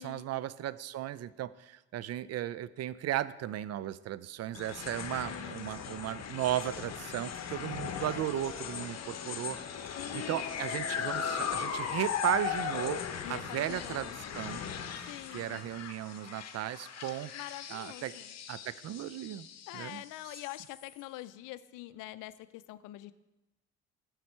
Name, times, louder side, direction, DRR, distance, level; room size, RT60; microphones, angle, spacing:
voice 1, 0.0-13.0 13.3-14.6 15.3-17.3 17.7-18.1 18.5-19.5 19.7-20.0, right 12 dB, 55° right, 17 dB, 0.4 m, -36 dB
sound 1, 4.5-21.0, left 8 dB, 55° left, 0.9 m, -38 dB
voice 2, 5.3-5.7 10.0-10.4 13.2-14.2 15.1-15.7 17.3-18.4 19.7-23.1, left 16 dB, 75° left, 16 dB, 0.5 m, -45 dB
8.1 x 7.9 x 4.3 m, 0.99 s
supercardioid pair, 60°, 32 cm